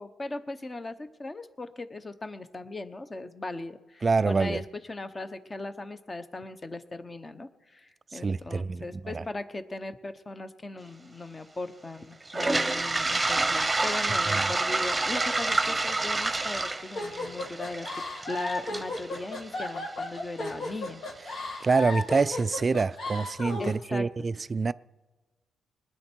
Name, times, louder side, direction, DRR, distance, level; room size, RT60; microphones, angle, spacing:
voice 1, 0.0-4.6 4.9-17.9 18.3-21.7 23.6-24.1, left 2 dB, 25° left, 0.9 m, -38 dB
voice 2, 4.0-4.6 8.1-9.2 14.3-14.4 21.6-24.7, right 4 dB, 30° right, 0.4 m, -26 dB
Toilet flush, 12.2-20.2, right 2 dB, 15° right, 0.9 m, -28 dB
sound 1, 17.0-23.8, left 2 dB, 65° left, 2.3 m, -34 dB
20.0 x 10.0 x 4.6 m
cardioid pair, 90°, 0 cm